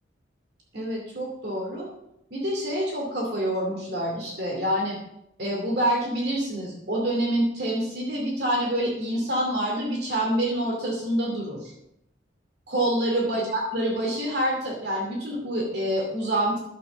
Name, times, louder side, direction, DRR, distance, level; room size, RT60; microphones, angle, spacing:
voice 1, 0.7-1.9 2.3-5.0 5.4-11.7 12.7-16.6, right 1 dB, 60° right, -1 dB, 2.6 m, -27 dB
11.5 x 7.7 x 7.1 m, 0.81 s
head